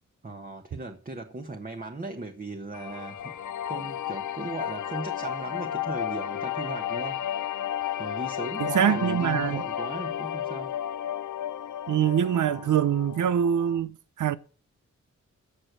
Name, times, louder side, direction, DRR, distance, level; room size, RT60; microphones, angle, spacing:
voice 1, 0.2-3.3 3.6-7.2 8.0-10.7, right 3 dB, 30° right, 1.3 m, -37 dB
sound 1, 2.7-13.8, left 10 dB, 80° left, 0.7 m, -33 dB
voice 2, 8.6-9.6 11.9-13.9 14.2-14.4, right 9 dB, 85° right, 0.7 m, -24 dB
15.0 x 6.6 x 6.2 m
wide cardioid pair, 95°, 30 cm